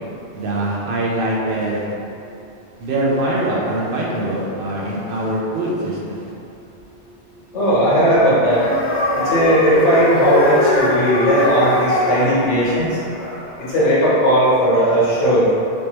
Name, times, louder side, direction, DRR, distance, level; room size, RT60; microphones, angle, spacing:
voice 1, 0.3-1.9 2.8-6.3, right 1 dB, 60° right, -5 dB, 0.7 m, -23 dB
voice 2, 7.5-8.7 9.1-13.0 13.6-15.5, equal, 85° left, -9 dB, 1.3 m, -16 dB
sound 1, 8.5-13.7, left 1 dB, 30° left, 0.7 m, -21 dB
3.3 x 3.2 x 2.9 m, 2.7 s
omnidirectional pair, 1.2 m